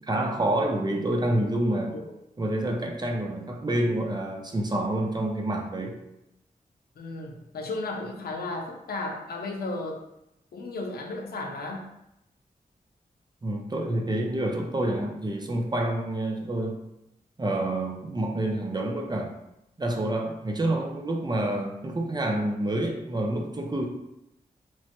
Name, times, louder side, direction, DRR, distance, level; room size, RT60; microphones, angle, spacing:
voice 1, 0.1-2.0 2.4-6.0 13.4-16.7 17.4-19.3 19.8-23.8, right 1 dB, 25° right, 2 dB, 0.5 m, -28 dB
voice 2, 7.0-10.0 10.5-11.8, left 2 dB, 85° left, 1 dB, 0.5 m, -34 dB
3.0 x 2.1 x 2.9 m, 0.84 s
cardioid pair, 65°, 16 cm